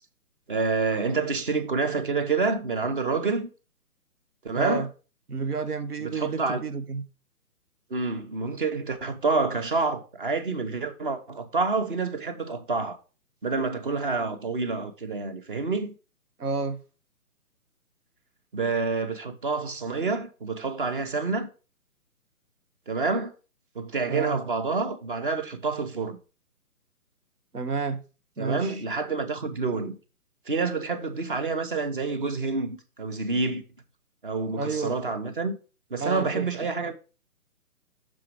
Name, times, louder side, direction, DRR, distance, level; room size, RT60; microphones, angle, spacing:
voice 1, 0.5-3.5 4.4-4.9 6.0-6.6 7.9-13.0 13.4-15.9 18.5-21.5 22.9-23.3 23.7-26.2 28.4-30.0 30.5-33.6 34.2-35.5 35.9-36.9, right 4 dB, 35° right, 0.9 m, -28 dB
voice 2, 4.5-4.9 5.3-7.0 16.4-16.8 24.1-24.4 27.5-28.0 28.4-28.8 29.4-29.5 34.6-35.0 36.0-36.5, right 4 dB, 80° right, 1.0 m, -30 dB
6.2 x 4.8 x 4.5 m
figure-of-eight pair, 140°, 45 cm